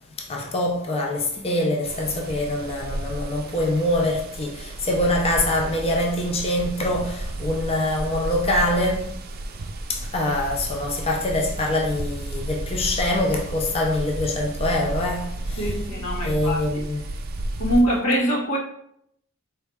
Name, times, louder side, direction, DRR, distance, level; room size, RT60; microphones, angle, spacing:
voice 1, 0.2-9.1 9.9-15.7 16.2-17.0, left 1 dB, 25° left, 0.5 m, -24 dB
sound 1, 1.8-17.8, right 1 dB, 45° right, 0.5 m, -33 dB
voice 2, 15.6-16.6 17.6-18.6, equal, 90° left, 1.3 m, -23 dB
4.5 x 3.2 x 3.5 m
head